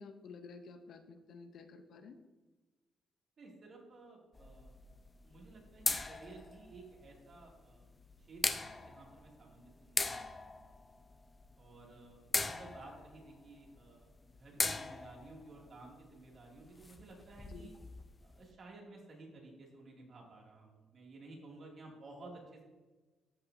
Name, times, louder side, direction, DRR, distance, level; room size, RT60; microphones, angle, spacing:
voice 1, 0.0-2.2 17.5-17.7, left 4 dB, 65° left, 8 dB, 0.7 m, -51 dB
voice 2, 3.4-4.7 5.2-7.8 8.3-10.8 11.6-17.8 18.2-22.7, right 2 dB, 50° right, -1 dB, 2.3 m, -54 dB
sound 1, 4.3-18.5, left 3 dB, 25° left, 0.5 m, -40 dB
13.0 x 5.9 x 2.7 m, 1.2 s
cardioid pair, 90°, 0 cm